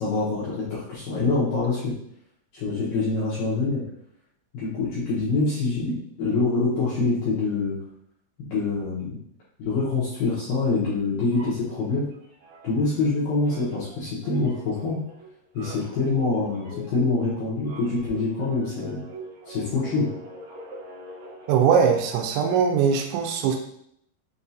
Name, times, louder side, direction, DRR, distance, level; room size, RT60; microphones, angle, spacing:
voice 1, 0.0-2.0 2.5-3.8 4.5-7.8 8.5-9.2 9.6-12.1 12.6-15.0 15.5-19.0 19.5-20.1, left 3 dB, 75° left, -9 dB, 2.1 m, -25 dB
sound 1, 11.3-13.1 13.4-22.9, right 1 dB, 70° right, 3.1 m, -44 dB
voice 2, 21.5-23.6, right 7 dB, 85° right, 3 dB, 2.9 m, -21 dB
6.9 x 2.3 x 2.7 m, 0.71 s
omnidirectional pair, 5.2 m